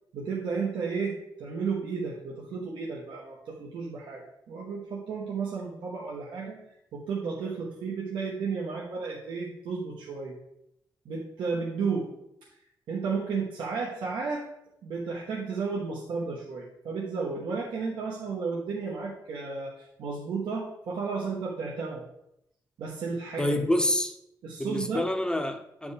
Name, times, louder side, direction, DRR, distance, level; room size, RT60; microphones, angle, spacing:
voice 1, 0.1-6.6 6.9-10.4 11.0-12.1 12.9-14.5 14.8-22.1 22.8-23.6 24.4-25.1, right 5 dB, 90° right, -4 dB, 1.1 m, -33 dB
voice 2, 23.4-24.2 24.6-25.9, left 1 dB, 10° left, 6 dB, 0.6 m, -27 dB
9.5 x 5.2 x 3.3 m, 0.79 s
cardioid pair, 110°, 8 cm